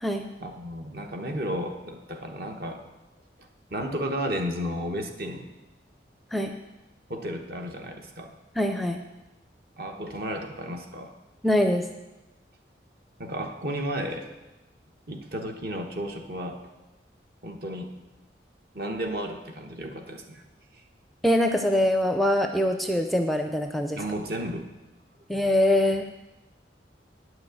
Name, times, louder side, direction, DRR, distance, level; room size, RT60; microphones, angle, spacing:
voice 1, 0.4-2.8 3.4-5.5 7.1-8.4 9.8-11.1 13.2-14.3 15.1-16.6 17.4-17.9 18.7-20.4 23.9-24.7, equal, 55° right, 3 dB, 1.2 m, -33 dB
voice 2, 8.6-9.0 11.4-11.9 21.2-24.0 25.3-26.1, left 1 dB, ahead, 5 dB, 0.5 m, -23 dB
9.4 x 6.3 x 7.7 m, 1.0 s
head